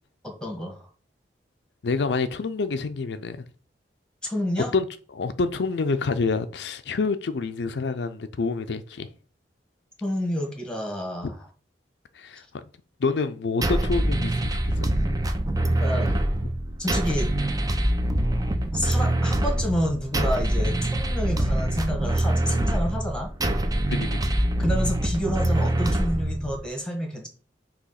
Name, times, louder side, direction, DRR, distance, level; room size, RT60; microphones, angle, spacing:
voice 1, 0.2-0.9 4.2-4.7 10.0-11.3 15.7-16.1 16.8-17.3 18.7-23.3 24.6-27.3, equal, 5° left, 1.5 m, -29 dB
voice 2, 1.8-3.5 4.7-9.1 12.1-12.6 13.0-14.9 23.9-24.2, left 4 dB, 75° left, 0.5 m, -27 dB
sound 1, 13.6-26.6, right 1 dB, 20° right, 0.6 m, -24 dB
6.1 x 3.0 x 5.7 m
head